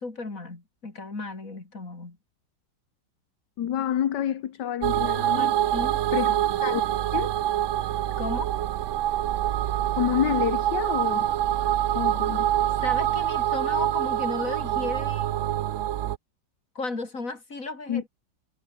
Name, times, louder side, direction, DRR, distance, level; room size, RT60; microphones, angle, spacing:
voice 1, 0.0-2.2 5.3-6.0 6.5-6.6 8.2-8.5 12.8-15.4 16.7-18.1, left 3 dB, 45° left, 4.4 m, -35 dB
voice 2, 3.6-5.5 6.1-6.8 7.1-7.3 10.0-11.3 11.9-12.5 17.9-18.0, left 10 dB, 70° left, 1.7 m, -28 dB
sound 1, 4.8-16.2, right 12 dB, 75° right, 0.7 m, -25 dB
omnidirectional pair, 2.0 m